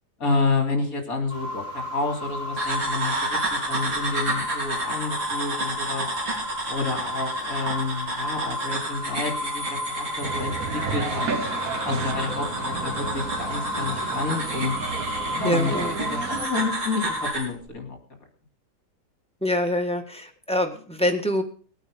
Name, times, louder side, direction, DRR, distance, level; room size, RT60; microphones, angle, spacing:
voice 1, 0.2-6.1 6.7-11.2 11.8-14.7 15.3-15.8 16.1-18.0, left 3 dB, 45° left, 4 dB, 3.3 m, -29 dB
sound 1, 1.3-17.3, left 1 dB, 30° right, 2.4 m, -33 dB
sound 2, 2.6-17.5, right 2 dB, 70° right, 5.2 m, -31 dB
sound 3, 10.2-16.5, right 4 dB, 45° right, 1.6 m, -32 dB
voice 2, 15.4-15.9 19.4-21.4, left 1 dB, 5° left, 4 dB, 1.5 m, -25 dB
19.0 x 9.0 x 5.4 m, 0.43 s
omnidirectional pair, 2.2 m